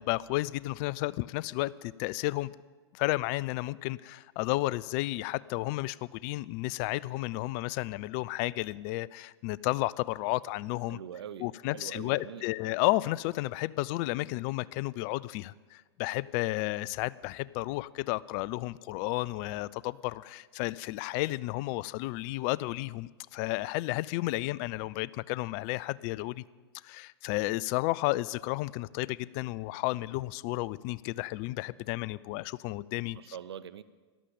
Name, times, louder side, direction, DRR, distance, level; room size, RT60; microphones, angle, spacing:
voice 1, 0.0-2.5 2.9-11.0 11.4-26.4 26.8-33.2, left 19 dB, 45° left, 21 dB, 0.4 m, -32 dB
voice 2, 10.9-12.4 33.1-33.8, right 9 dB, 75° right, 15 dB, 0.7 m, -43 dB
13.5 x 11.5 x 7.0 m, 1.4 s
hypercardioid pair, 100°, 14 cm